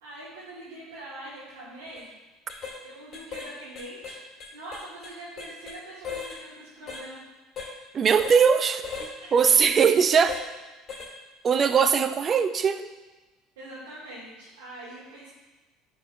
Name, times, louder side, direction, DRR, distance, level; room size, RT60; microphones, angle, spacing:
voice 1, 0.0-2.1 2.8-7.2 9.2-9.5 13.5-15.3, right 1 dB, 80° right, -9 dB, 1.6 m, -43 dB
sound 1, 1.8-2.0 2.5-2.8 3.1-3.5 3.7-5.8 6.0-6.4 6.9-7.0 7.6-7.7 8.2-8.4 8.8-9.1 9.6-9.7 10.3-10.5 10.9-11.1 11.5-11.7, left 5 dB, 45° left, 1.7 m, -37 dB
voice 2, 7.9-8.9 9.3-10.4 11.4-12.9, right 6 dB, 40° right, 11 dB, 0.4 m, -20 dB
9.8 x 3.9 x 2.5 m, 1.2 s
hypercardioid pair, 70°, 0 cm